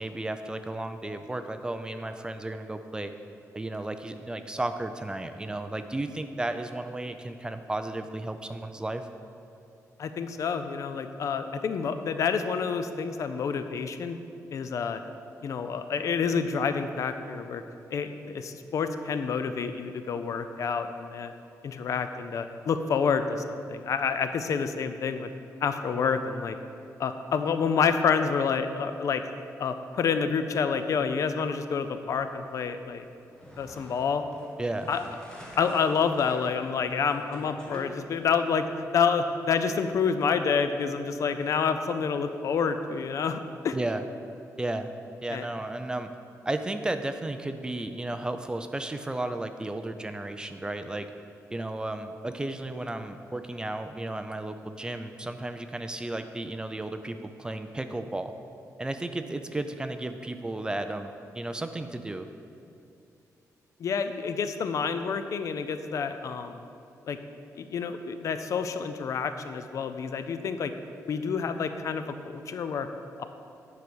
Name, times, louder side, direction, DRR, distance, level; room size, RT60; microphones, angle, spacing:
voice 1, 0.0-3.1 3.5-9.1 34.6-34.9 43.7-44.0 44.6-44.9 45.2-46.1 46.5-51.1 51.5-58.3 58.8-62.3, right 2 dB, 15° right, 8 dB, 0.4 m, -33 dB
voice 2, 10.0-14.2 14.5-15.0 15.4-17.6 17.9-21.3 21.6-25.3 25.6-26.6 27.0-29.2 29.6-33.0 33.6-34.2 34.9-35.0 35.6-38.7 38.9-43.8 45.3-45.4 63.8-66.6 67.1-67.2 67.5-70.7 71.1-72.9 73.2-73.3, left 6 dB, 60° left, 9 dB, 0.5 m, -28 dB
sound 1, 33.2-38.7, equal, 15° left, 1.5 m, -48 dB
9.6 x 4.9 x 6.1 m, 2.7 s
wide cardioid pair, 140°, 6 cm